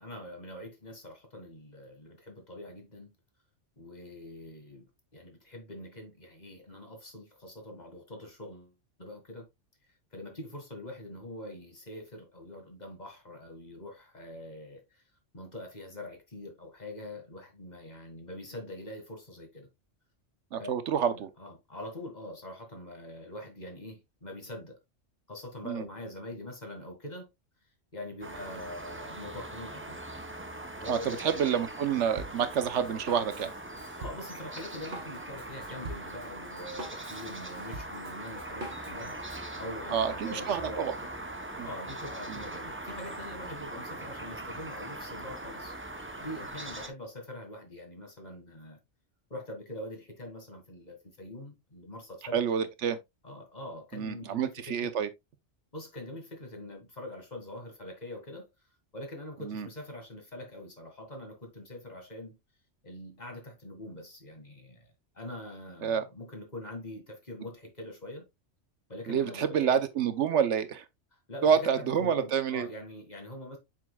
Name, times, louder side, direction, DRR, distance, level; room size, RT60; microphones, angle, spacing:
voice 1, 0.0-3.1 3.8-8.7 9.0-9.5 10.1-15.0 15.3-19.7 20.6-20.7 21.1-24.8 25.3-27.3 27.9-30.0 30.8-31.3 34.0-41.1 41.4-45.7 46.2-48.8 49.3-52.5 53.2-54.9 55.7-58.5 58.9-62.4 62.8-68.2 68.9-69.8 71.1-73.6, left 1 dB, 35° left, 1.9 m, -44 dB
voice 2, 20.5-21.3 25.6-25.8 30.9-33.5 39.9-40.9 41.6-41.7 42.3-42.4 52.3-53.0 53.9-55.1 59.4-59.7 65.8-66.1 69.1-70.8 71.4-72.7, right 7 dB, 75° right, 1.0 m, -28 dB
sound 1, 28.2-46.9, right 1 dB, 15° right, 0.7 m, -41 dB
Drum kit, 32.2-39.5, right 2 dB, 55° right, 1.6 m, -45 dB
7.4 x 5.6 x 2.2 m
omnidirectional pair, 1.2 m